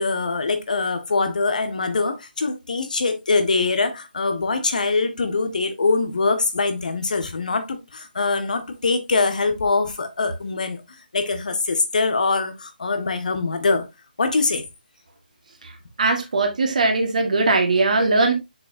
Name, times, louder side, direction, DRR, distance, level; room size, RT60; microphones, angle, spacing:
voice 1, 0.0-10.8 11.1-13.8 14.2-14.6, left 3 dB, 55° left, 1.8 m, -23 dB
voice 2, 16.0-18.3, right 3 dB, 50° right, 1.8 m, -19 dB
6.9 x 6.5 x 2.7 m
figure-of-eight pair, 145°, 5 cm